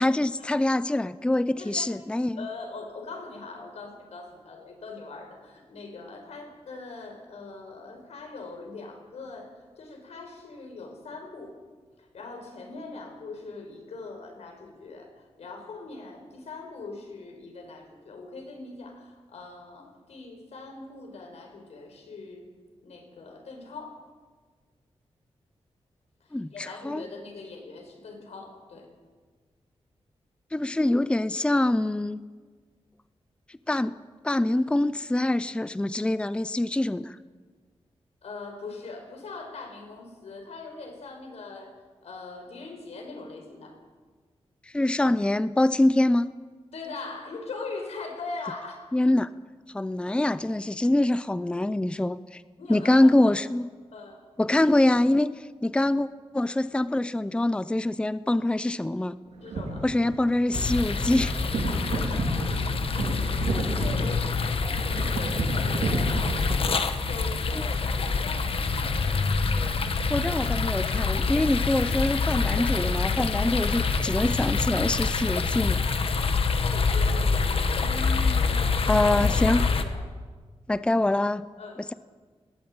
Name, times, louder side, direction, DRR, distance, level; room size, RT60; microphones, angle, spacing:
voice 1, 0.0-2.4 26.3-27.0 30.5-32.2 33.7-34.0 34.2-37.2 44.7-46.3 48.9-49.3 49.7-52.4 52.7-53.7 54.4-56.1 56.3-59.2 59.8-61.3 67.5-67.7 69.5-69.7 70.1-75.8 77.9-78.6 78.9-79.6 80.7-81.4, left 1 dB, 10° left, 15 dB, 0.6 m, -24 dB
voice 2, 1.6-2.0 2.4-11.6 12.0-22.5 22.8-24.1 26.2-28.9 38.2-41.7 42.0-43.8 46.7-48.9 52.6-53.4 53.9-54.3 59.4-59.9 61.6-69.4 73.4-73.7 75.8-76.3 76.6-80.0 81.6-81.9, left 3 dB, 85° left, 3 dB, 5.4 m, -41 dB
sound 1, 59.3-66.5, right 2 dB, 80° right, 4.0 m, -31 dB
sound 2, 60.5-79.8, left 4 dB, 60° left, 1.6 m, -26 dB
20.5 x 17.5 x 8.9 m, 1.5 s
wide cardioid pair, 120°, 11 cm